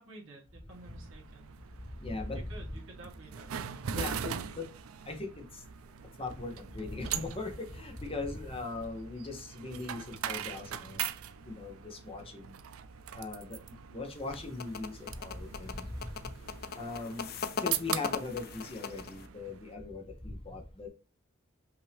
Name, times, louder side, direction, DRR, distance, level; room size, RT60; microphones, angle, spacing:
voice 1, 0.0-1.5 2.3-3.5, right 2 dB, 70° right, -1 dB, 1.6 m, -51 dB
sound 1, 0.7-19.7, right 8 dB, 90° right, 0.4 m, -41 dB
voice 2, 2.0-2.4 3.9-4.7 5.1-5.4 6.2-11.0 11.4-12.4 13.1-13.6 13.9-15.9 16.8-17.3 17.6-20.9, left 3 dB, 25° left, 4 dB, 0.8 m, -39 dB
sound 2, 14.1-19.3, left 5 dB, 45° left, 0.4 m, -39 dB
5.7 x 2.7 x 3.2 m, 0.35 s
head